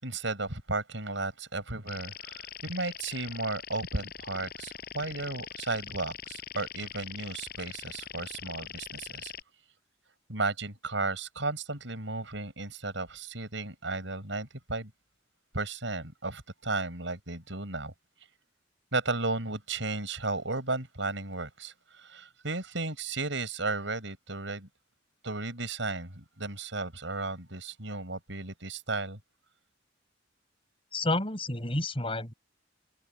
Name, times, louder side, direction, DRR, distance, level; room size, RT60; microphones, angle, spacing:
voice 1, 0.0-9.3 10.3-14.9 15.5-17.9 18.9-24.7 25.2-29.2, right 3 dB, 75° right, 7.4 m, -34 dB
sound 1, 1.9-9.4, left 8 dB, 55° left, 7.2 m, -42 dB
voice 2, 30.9-32.3, left 2 dB, 30° left, 7.6 m, -30 dB
open air
head